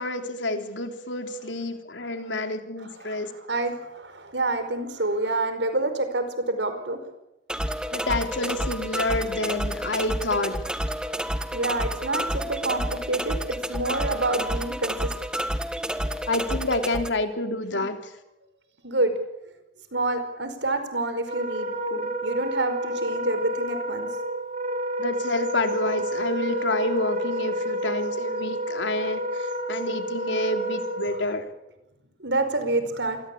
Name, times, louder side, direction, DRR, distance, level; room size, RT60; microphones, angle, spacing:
voice 1, 0.0-3.3 7.9-10.6 16.3-18.1 25.0-31.4, left 2 dB, 85° left, 6 dB, 3.5 m, -28 dB
voice 2, 3.0-7.1 11.4-15.1 17.7-17.8 18.8-19.2 19.9-24.1 32.2-33.2, right 2 dB, 75° right, 9 dB, 5.1 m, -28 dB
sound 1, 7.5-17.1, equal, 5° right, 1.5 m, -30 dB
Wind instrument woodwind instrument, 21.2-31.3, right 1 dB, 40° right, 4.2 m, -30 dB
27.5 x 22.0 x 8.6 m, 0.89 s
head